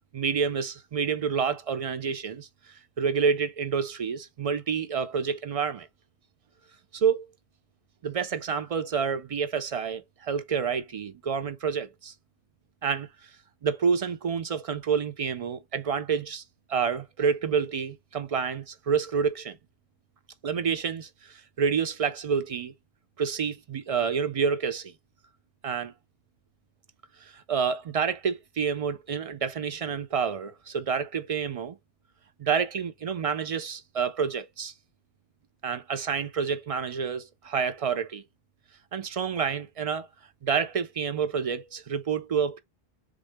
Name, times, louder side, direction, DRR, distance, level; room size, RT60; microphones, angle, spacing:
voice 1, 0.1-5.9 6.9-7.3 8.0-12.1 12.8-13.3 13.6-16.4 16.7-19.6 20.4-22.7 23.2-24.9 25.6-25.9 27.2-31.8 32.4-34.7 35.6-38.2 38.9-40.1 40.4-42.6, right 6 dB, 50° right, 0.4 m, -28 dB
3.8 x 3.6 x 3.3 m
omnidirectional pair, 1.0 m